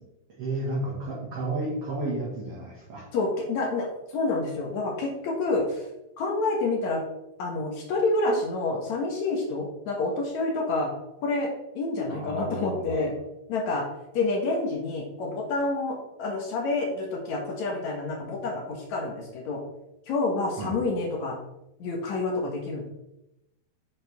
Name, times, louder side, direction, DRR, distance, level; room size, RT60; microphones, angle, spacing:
voice 1, 0.3-3.1 12.1-13.1 20.6-20.8, right 2 dB, 50° right, -5 dB, 2.5 m, -32 dB
voice 2, 3.1-5.9 6.2-7.0 7.4-10.9 11.2-13.1 13.5-13.9 14.1-19.6 20.1-21.4 21.8-22.8, left 3 dB, 60° left, 1 dB, 2.2 m, -28 dB
8.7 x 7.6 x 3.5 m, 0.91 s
omnidirectional pair, 4.1 m